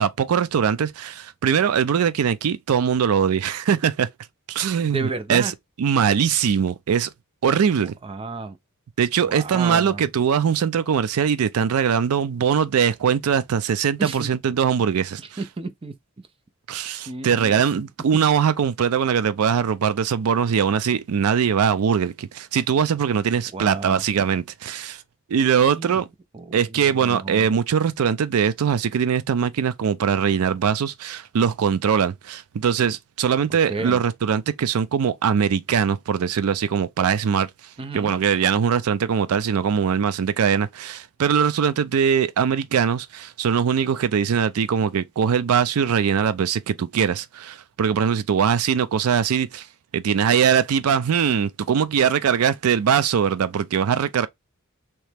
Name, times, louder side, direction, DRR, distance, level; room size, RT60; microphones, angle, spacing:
voice 1, 0.0-4.1 4.5-5.5 5.8-7.1 7.4-7.9 9.0-15.4 16.7-25.0 25.3-26.1 26.5-37.5 37.9-49.7 49.9-54.3, right 7 dB, 80° right, 0.4 m, -21 dB
voice 2, 4.9-5.5 8.0-8.6 9.2-10.0 14.0-14.3 15.4-15.9 17.1-17.5 23.5-24.0 25.6-26.0 26.3-27.5 33.7-34.0 37.8-38.1, right 3 dB, 25° right, 0.4 m, -31 dB
3.2 x 3.0 x 3.3 m
head